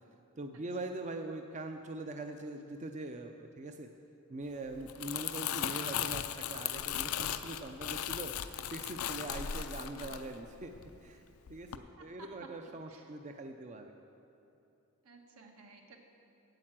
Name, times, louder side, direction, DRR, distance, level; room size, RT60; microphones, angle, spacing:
voice 1, 0.4-3.9 4.3-8.3 8.7-10.7 11.0-11.2 11.5-13.9, right 2 dB, 35° right, 5 dB, 0.4 m, -42 dB
Crumpling crinkling, 4.7-11.1 11.5-11.8, left 10 dB, 75° left, 0.4 m, -37 dB
voice 2, 12.0-12.5 12.9-13.1 15.0-16.0, right 3 dB, 80° right, 2 dB, 1.4 m, -54 dB
8.9 x 8.7 x 7.4 m, 2.9 s
head